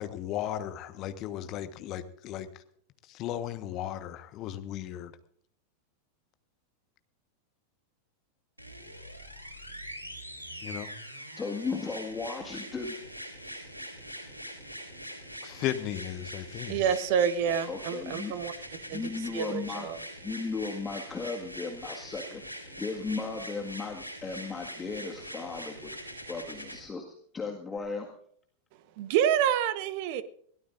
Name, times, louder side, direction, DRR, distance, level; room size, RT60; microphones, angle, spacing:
voice 1, 0.0-2.5 3.1-5.1 10.6-10.9 15.4-16.8, left 12 dB, 35° left, 10 dB, 1.3 m, -35 dB
sound 1, 8.6-26.8 27.8-27.9, equal, 85° right, 3.8 m, -43 dB
voice 2, 11.4-13.0 17.7-18.3 18.9-19.9 20.2-25.9 26.3-27.1 27.3-28.1, left 4 dB, 15° left, 2 dB, 1.8 m, -36 dB
voice 3, 16.7-18.5 18.9-19.0 19.3-20.0 29.0-30.2, right 9 dB, 45° right, 15 dB, 1.0 m, -27 dB
22.0 x 17.0 x 2.6 m, 0.62 s
figure-of-eight pair, 90°, 0 cm